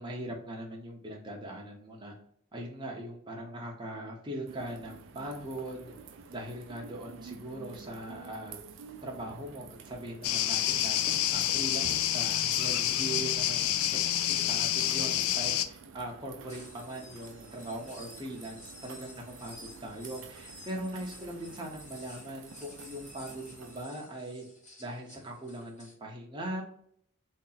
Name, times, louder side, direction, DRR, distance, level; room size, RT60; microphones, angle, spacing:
voice 1, 0.0-2.1 2.5-5.9 6.3-8.6 9.0-11.0 11.3-24.4 24.8-26.6, right 1 dB, 20° right, -1 dB, 0.7 m, -40 dB
sound 1, 4.5-23.8, right 5 dB, 60° right, 0.4 m, -50 dB
sound 2, 10.2-15.7, left 11 dB, 80° left, 0.3 m, -28 dB
sound 3, 16.5-25.9, left 2 dB, 35° left, 1.3 m, -52 dB
3.2 x 2.8 x 3.9 m, 0.66 s
head